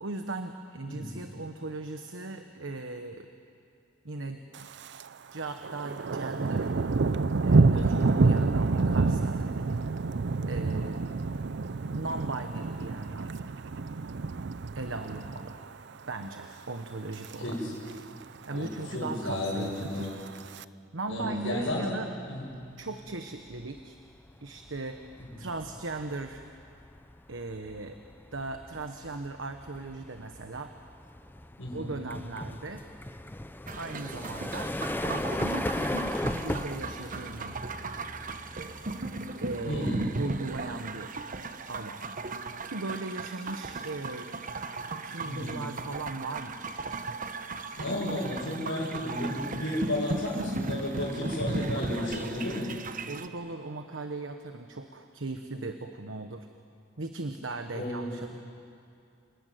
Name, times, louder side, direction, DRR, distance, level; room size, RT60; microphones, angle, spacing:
voice 1, 0.0-3.3 4.0-4.7 5.3-6.7 7.4-9.4 10.5-11.0 11.9-13.3 14.7-15.6 16.1-17.6 18.5-20.1 20.9-22.1 22.8-24.0 24.4-25.0 25.4-26.5 27.3-28.0 28.3-30.7 31.7-32.8 33.7-34.7 35.0-37.6 39.4-41.1 41.7-42.0 42.7-44.3 45.0-46.9 51.2-52.4 53.1-56.5 57.0-58.3, right 2 dB, 85° right, 6 dB, 1.2 m, -38 dB
Thunder, 4.5-5.1 5.4-15.7 16.1-16.5 16.9-17.3 17.6-17.7 17.9-18.0 18.4-18.9 19.7-20.6, right 3 dB, 65° right, 0.6 m, -28 dB
voice 2, 7.7-8.0 17.4-17.7 18.5-20.2 21.1-22.0 22.3-22.5 25.2-25.3 31.6-31.8 39.7-40.1 45.2-45.6 47.8-52.7 57.7-58.3, left 1 dB, 80° left, -9 dB, 6.4 m, -33 dB
sound 1, 22.8-23.1 23.5-40.2, left 1 dB, 10° left, 0.6 m, -38 dB
sound 2, 33.7-53.3, right 3 dB, 45° right, 1.0 m, -37 dB
29.0 x 19.0 x 9.3 m, 2.5 s
head